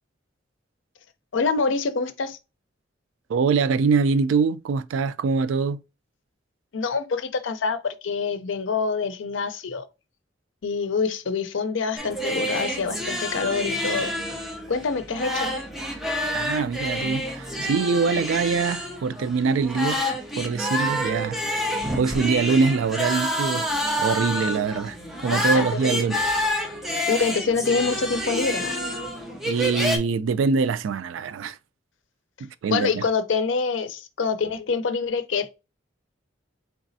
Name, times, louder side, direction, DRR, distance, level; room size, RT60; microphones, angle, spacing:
voice 1, 1.3-2.4 6.7-9.8 10.6-14.1 14.7-15.6 25.3-26.0 27.1-28.8 32.7-35.5, left 4 dB, 75° left, 0.5 m, -26 dB
voice 2, 3.3-5.8 16.3-20.0 20.4-21.4 22.0-23.7 24.0-25.0 25.2-26.2 29.5-31.6 32.4-33.0, right 5 dB, 90° right, 0.3 m, -23 dB
sound 1, 12.0-30.0, equal, ahead, 0.7 m, -28 dB
4.0 x 3.4 x 2.6 m
head